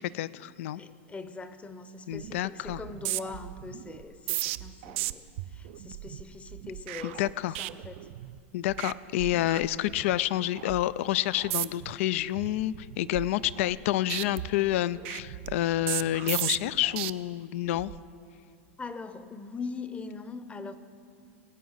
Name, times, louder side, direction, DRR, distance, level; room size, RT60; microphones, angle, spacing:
voice 1, 0.1-0.8 2.1-2.8 7.0-7.6 8.5-17.9, left 14 dB, 65° left, 18 dB, 0.3 m, -28 dB
voice 2, 0.7-7.3 7.6-8.1 18.8-20.8, left 4 dB, 15° left, 12 dB, 0.7 m, -41 dB
sound 1, 2.1-2.4 2.7-8.4 8.7-8.9 9.2-10.2 10.6-10.8 11.4-11.9 12.3-13.8 14.1-17.1 17.6-18.0, right 17 dB, 60° right, 0.4 m, -36 dB
19.5 x 9.3 x 4.0 m, 2.4 s
hypercardioid pair, 105°, 7 cm